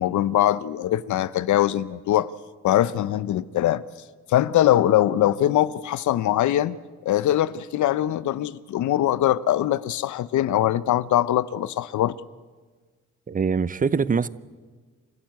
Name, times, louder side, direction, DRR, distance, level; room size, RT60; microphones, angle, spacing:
voice 1, 0.0-2.3 2.6-3.8 4.3-6.8 7.0-12.2, left 12 dB, 75° left, 0.8 m, -22 dB
voice 2, 13.3-14.3, right 5 dB, 30° right, 0.7 m, -23 dB
29.5 x 13.0 x 9.5 m
cardioid pair, 90°, 30 cm